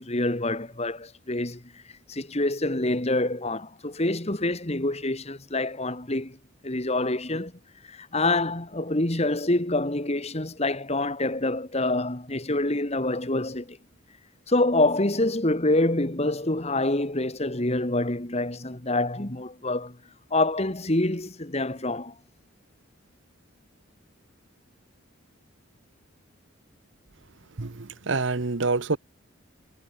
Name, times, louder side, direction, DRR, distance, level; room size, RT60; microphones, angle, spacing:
voice 1, 0.0-1.8 2.1-6.4 6.6-7.5 7.9-13.8 14.5-20.0 20.3-22.1, left 2 dB, 30° left, 2.0 m, -26 dB
voice 2, 27.6-29.0, right 3 dB, 60° right, 1.0 m, -27 dB
head